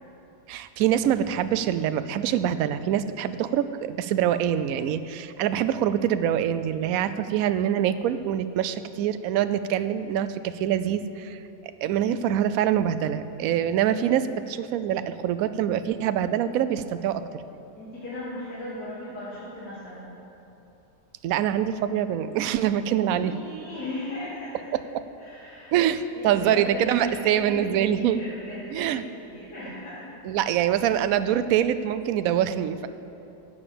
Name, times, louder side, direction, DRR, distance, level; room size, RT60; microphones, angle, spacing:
voice 1, 0.5-11.4 11.8-17.2 21.2-23.3 24.7-24.8 25.7-28.2 28.7-29.0 30.2-32.9, right 10 dB, 70° right, 12 dB, 0.9 m, -25 dB
voice 2, 17.8-20.2 23.1-24.7 25.2-25.7 26.1-30.1, left 1 dB, 80° left, -10 dB, 3.1 m, -37 dB
13.5 x 8.8 x 7.1 m, 2.9 s
omnidirectional pair, 1.8 m